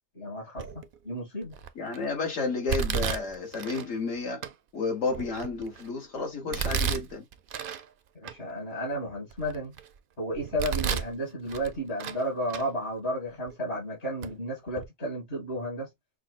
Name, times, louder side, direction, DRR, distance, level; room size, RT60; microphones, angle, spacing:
voice 1, 0.1-0.7 1.0-1.5 8.2-9.7 10.2-15.9, equal, 50° left, 2.2 m, -33 dB
Domestic sounds home sounds, 0.6-1.0 1.5-2.0 2.7-3.9 4.4-4.5 5.1-5.9 6.5-7.8 8.2-8.3 8.9-9.9 10.4-11.1 11.5-12.2 12.5-12.6 13.5-13.6 14.2-14.3 14.7-14.9, right 7 dB, 60° right, 0.5 m, -32 dB
voice 2, 1.8-7.3, left 4 dB, 75° left, 1.9 m, -31 dB
5.9 x 2.1 x 2.3 m
omnidirectional pair, 1.3 m